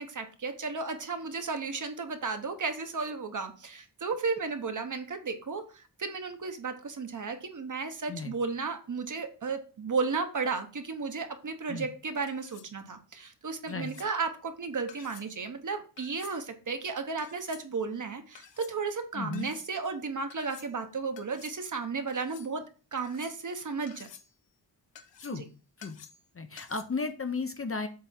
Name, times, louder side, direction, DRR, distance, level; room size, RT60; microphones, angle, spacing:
voice 1, 0.0-22.6 22.9-24.1 25.3-25.4, right 4 dB, 45° right, 7 dB, 0.9 m, -34 dB
sound 1, 12.3-12.7 13.7-14.1 14.9-15.3 16.0-16.4 17.2-17.6 18.3-18.7 19.3-19.7 20.3-20.7 21.2-21.6 22.1-22.5 23.0-23.5 23.9-24.3 25.0-25.5 25.8-26.3 26.6-26.8, left 8 dB, 90° left, 0.8 m, -51 dB
voice 2, 19.1-19.5 25.2-25.5 25.8-26.0 26.3-27.9, left 4 dB, 30° left, 7 dB, 0.6 m, -34 dB
7.6 x 3.5 x 4.2 m, 0.36 s
wide cardioid pair, 130°, 43 cm